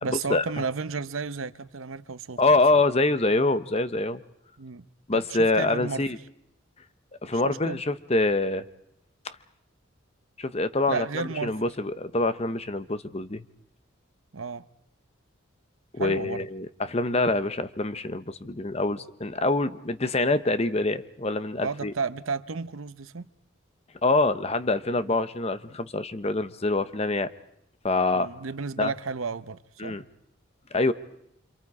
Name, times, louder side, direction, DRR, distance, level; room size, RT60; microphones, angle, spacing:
voice 1, 0.0-2.4 4.6-4.9 5.1-6.0 7.3-7.8 10.9-11.7 14.3-14.7 16.0-16.5 21.6-23.3 25.0-25.2 28.1-30.0, right 4 dB, 80° right, 0.8 m, -33 dB
voice 2, 2.4-4.2 5.1-6.2 7.2-8.6 9.2-9.4 10.4-13.4 15.9-21.9 24.0-27.3 27.8-28.3 28.8-28.9 29.8-30.0 30.7-30.9, left 2 dB, 30° left, 0.8 m, -25 dB
27.5 x 26.5 x 4.9 m
head